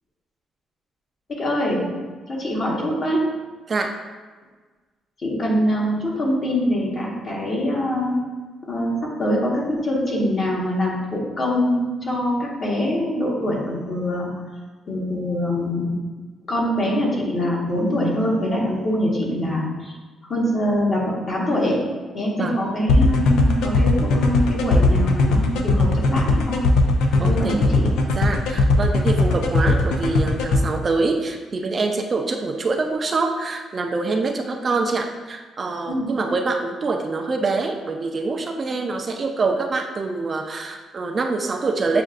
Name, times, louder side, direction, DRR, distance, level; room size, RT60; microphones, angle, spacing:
voice 1, 1.3-1.8 2.3-3.2 5.2-8.2 8.7-14.3 14.9-15.9 16.5-19.9 20.3-21.8 22.1-26.6 27.3-27.9 35.9-36.1, left 1 dB, 45° left, -4 dB, 1.3 m, -23 dB
sound 1, 22.9-30.6, left 3 dB, 90° left, 0.4 m, -18 dB
voice 2, 27.2-27.8 28.1-42.0, right 3 dB, 40° right, 3 dB, 0.4 m, -25 dB
7.4 x 2.5 x 2.4 m, 1.4 s
cardioid pair, 90°, 0 cm